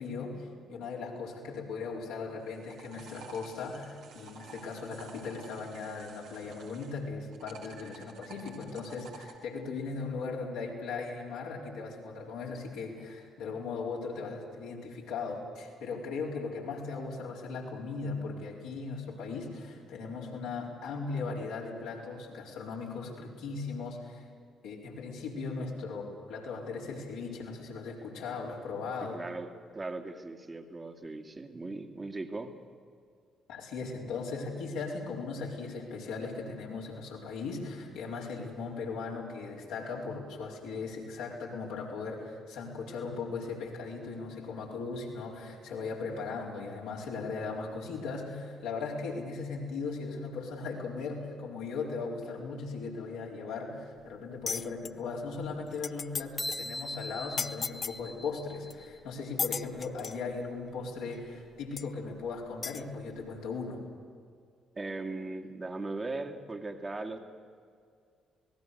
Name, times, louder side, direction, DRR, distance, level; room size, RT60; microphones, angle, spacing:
voice 1, 0.0-24.3 24.6-29.2 33.5-63.8, left 4 dB, 70° left, -2 dB, 4.3 m, -38 dB
sound 1, 2.4-7.0 7.3-9.4, right 5 dB, 65° right, 2.5 m, -51 dB
voice 2, 29.1-32.5 39.3-39.4 64.8-67.2, right 2 dB, 25° right, 4 dB, 2.3 m, -38 dB
sound 2, 54.5-54.9 55.4-55.5 55.7-56.2 56.5-56.7 57.4-58.0 58.7-58.8 59.4-60.2 61.1-61.2 61.8-61.9 62.6-62.8, left 6 dB, 45° left, 0.7 m, -34 dB
sound 3, 56.4-59.0, left 1 dB, 10° left, 0.7 m, -40 dB
27.5 x 19.0 x 6.8 m, 2.2 s
figure-of-eight pair, 45°, 0 cm